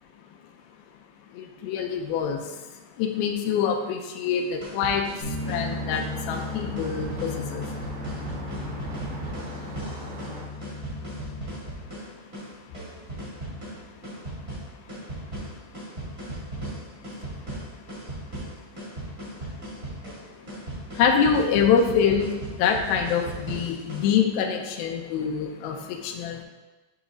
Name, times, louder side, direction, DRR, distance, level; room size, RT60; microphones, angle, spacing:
voice 1, 1.3-2.6 3.0-7.7 9.5-9.7 10.0-10.2 11.0-11.1 13.0-13.2 14.4-14.5 16.7-16.8 17.2-17.3 20.9-26.4, left 7 dB, 85° left, 3 dB, 2.2 m, -25 dB
sound 1, 4.4-24.1, right 1 dB, 40° right, 1.1 m, -37 dB
Bass guitar, 5.2-11.5, left 2 dB, 65° left, 1.6 m, -36 dB
sound 2, 5.4-10.4, equal, 85° right, 4.0 m, -40 dB
8.7 x 3.0 x 3.7 m, 1.2 s
omnidirectional pair, 4.9 m